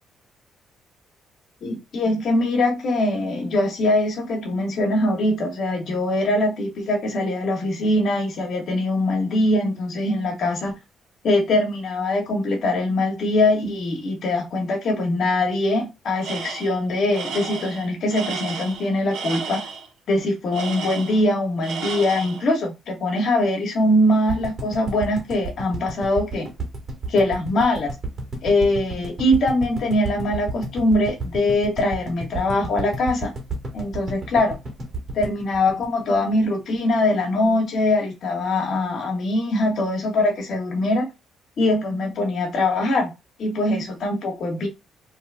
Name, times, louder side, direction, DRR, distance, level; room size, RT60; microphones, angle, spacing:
voice 1, 1.6-10.8 11.2-19.6 20.1-26.5 27.1-27.9 28.4-33.3 33.7-34.6 35.1-41.1 41.6-43.1 43.4-44.7, left 1 dB, 65° left, 1.3 m, -22 dB
Tools, 16.2-16.8 17.1-19.9 20.5-21.3 21.6-22.5, right 5 dB, 80° right, 0.9 m, -32 dB
sound 1, 24.3-36.4 36.7-36.8 37.0-37.1, right 2 dB, 40° right, 1.7 m, -32 dB
3.2 x 2.3 x 3.4 m
cardioid pair, 90°, 0 cm